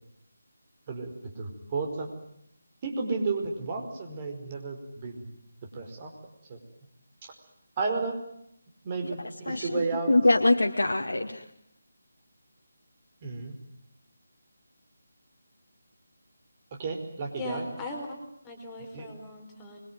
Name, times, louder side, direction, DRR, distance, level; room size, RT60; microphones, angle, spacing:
voice 1, 0.9-2.1 2.8-5.2 5.7-6.1 6.5-6.6 7.8-8.2 8.8-10.1 13.2-13.6 16.8-17.7 18.9-19.1, right 4 dB, 25° right, 4 dB, 4.9 m, -32 dB
voice 2, 9.5-11.4, left 2 dB, 65° left, 1 dB, 2.2 m, -24 dB
voice 3, 17.4-18.1 18.4-19.8, left 2 dB, 10° left, 1 dB, 4.6 m, -39 dB
26.5 x 23.0 x 9.4 m, 0.75 s
figure-of-eight pair, 155°, 0 cm